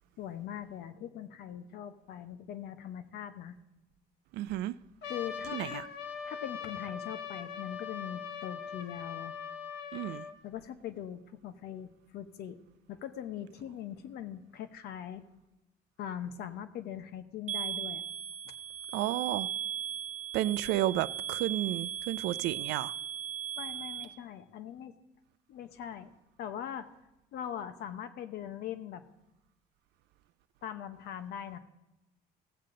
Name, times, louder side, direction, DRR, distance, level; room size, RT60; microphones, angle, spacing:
voice 1, 0.2-3.6 5.0-5.8 6.3-9.3 10.4-12.6 12.9-15.2 16.0-18.0 18.4-18.5 23.5-24.9 25.5-26.1 26.4-26.9 27.3-29.0 30.6-31.6, left 9 dB, 75° left, 0.9 m, -41 dB
voice 2, 4.3-4.7 5.5-5.9 9.9-10.2 18.9-19.5 20.3-22.9, right 14 dB, 85° right, 0.4 m, -32 dB
Trumpet, 5.0-10.3, left 7 dB, 90° left, 1.3 m, -41 dB
sound 1, 17.5-24.0, right 10 dB, 50° right, 0.9 m, -37 dB
17.0 x 7.6 x 3.8 m
cardioid pair, 110°, 17 cm